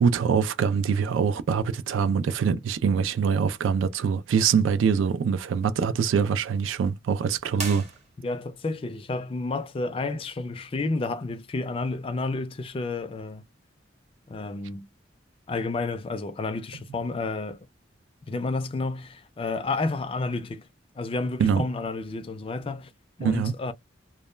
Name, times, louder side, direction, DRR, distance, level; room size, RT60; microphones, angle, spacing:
voice 1, 0.0-7.9 21.4-21.6 23.2-23.6, right 6 dB, 85° right, 0.3 m, -24 dB
sound 1, 7.5-8.6, right 3 dB, 35° right, 0.8 m, -37 dB
voice 2, 8.2-13.4 14.3-14.9 15.5-17.7 18.3-20.7 21.0-22.9 23.2-23.7, left 3 dB, 30° left, 0.3 m, -30 dB
2.2 x 2.1 x 3.1 m
head